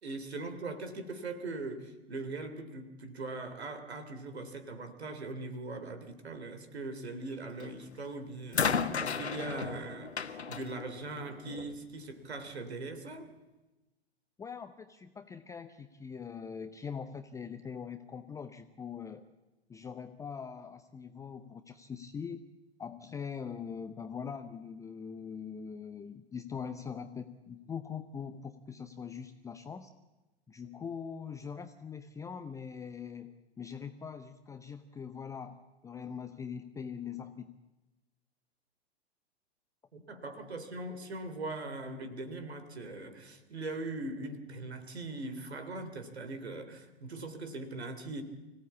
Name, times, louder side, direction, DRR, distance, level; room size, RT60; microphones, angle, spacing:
voice 1, 0.0-13.3 39.9-48.2, right 2 dB, 70° right, 8 dB, 3.1 m, -41 dB
sound 1, 7.6-7.9 8.5-11.8 12.8-12.9, left 6 dB, 75° left, 1.3 m, -34 dB
voice 2, 14.4-19.2 19.7-22.4 22.8-29.9 30.5-37.6, left 6 dB, 10° left, 9 dB, 0.7 m, -42 dB
25.0 x 16.5 x 8.6 m, 1.1 s
figure-of-eight pair, 100°, 33 cm